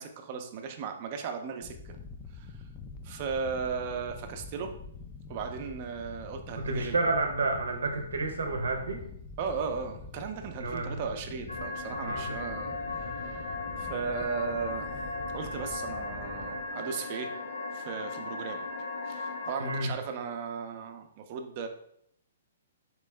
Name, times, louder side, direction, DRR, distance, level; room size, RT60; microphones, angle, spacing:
voice 1, 0.0-2.0 2.3-2.6 3.0-4.7 5.3-7.0 9.4-12.8 13.2-13.4 13.8-14.9 15.3-17.3 17.7-18.7 19.0-21.7, right 5 dB, 45° right, 6 dB, 0.5 m, -36 dB
sound 1, 1.6-16.7, left 4 dB, 25° left, 0.4 m, -45 dB
voice 2, 6.6-9.0 10.6-11.0 12.0-12.3 19.6-19.9, right 3 dB, 85° right, 4 dB, 0.7 m, -30 dB
sound 2, 11.5-19.8, left 3 dB, 85° left, 0.6 m, -37 dB
3.4 x 3.0 x 3.2 m, 0.71 s
hypercardioid pair, 135°, 0 cm